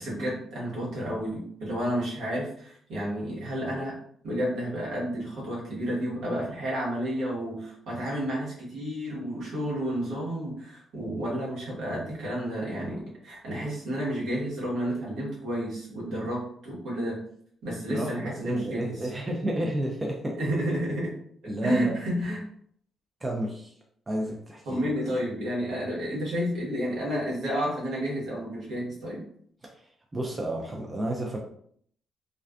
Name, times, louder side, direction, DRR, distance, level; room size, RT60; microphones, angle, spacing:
voice 1, 0.0-4.0 4.2-17.2 17.6-18.9 20.4-21.1 21.6-22.4 24.6-29.2, equal, 80° right, -5 dB, 1.2 m, -31 dB
voice 2, 17.9-20.4 21.5-21.9 23.2-23.7 24.1-24.8 30.1-31.4, right 1 dB, 25° right, -1 dB, 0.5 m, -31 dB
2.4 x 2.3 x 2.2 m, 0.63 s
supercardioid pair, 60°, 0 cm